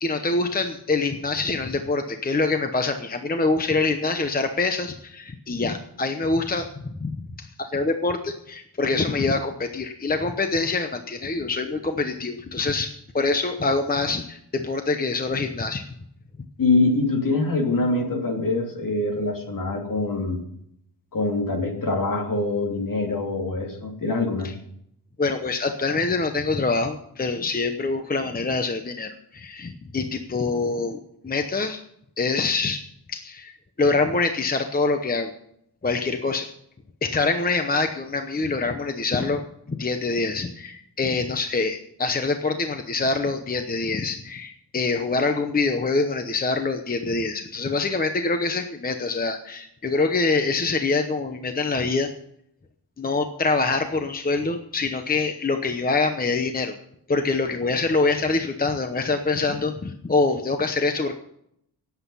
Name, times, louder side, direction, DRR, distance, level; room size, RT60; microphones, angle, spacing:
voice 1, 0.0-15.8 25.2-31.8 32.2-32.8 33.1-35.3 35.8-36.5 37.0-52.1 53.0-56.7 57.1-61.1, left 3 dB, 25° left, 7 dB, 0.8 m, -25 dB
voice 2, 16.6-20.4 21.1-24.5, left 3 dB, 55° left, 2 dB, 2.8 m, -24 dB
18.0 x 8.2 x 5.5 m, 0.73 s
wide cardioid pair, 170°, 39 cm